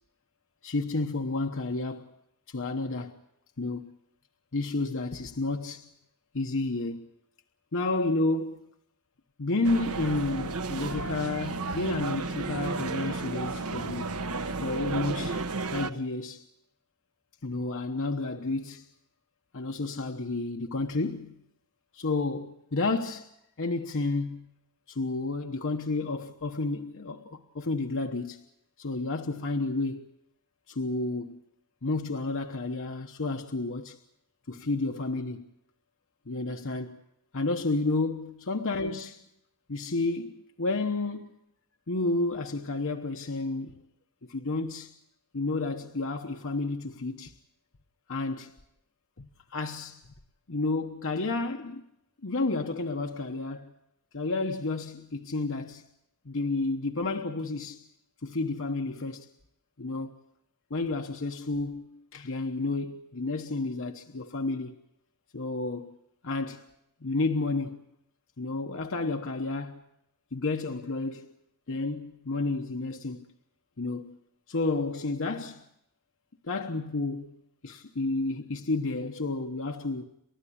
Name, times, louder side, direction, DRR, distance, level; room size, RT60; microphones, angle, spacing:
voice 1, 0.6-2.2 2.5-3.2 3.6-4.0 4.5-5.9 6.3-7.1 7.7-8.7 9.4-14.1 14.6-16.5 17.4-18.9 19.5-21.4 21.9-23.3 23.6-24.5 24.9-28.4 28.8-30.1 30.7-31.4 31.8-34.0 34.5-35.5 36.3-37.0 37.3-39.2 39.7-41.4 41.9-43.8 44.2-44.9 45.3-47.3 48.1-48.5 49.2-50.0 50.5-51.8 52.2-53.7 54.1-55.9 56.2-57.9 58.2-59.3 59.8-60.2 60.7-64.8 65.3-66.0 66.2-66.6 67.0-67.8 68.4-69.8 70.3-71.3 71.7-73.3 73.8-74.2 74.5-75.6 76.4-80.0, left 3 dB, 60° left, 1.1 m, -31 dB
sound 1, 9.6-15.9, right 3 dB, 75° right, 1.1 m, -33 dB
29.5 x 13.5 x 8.6 m
head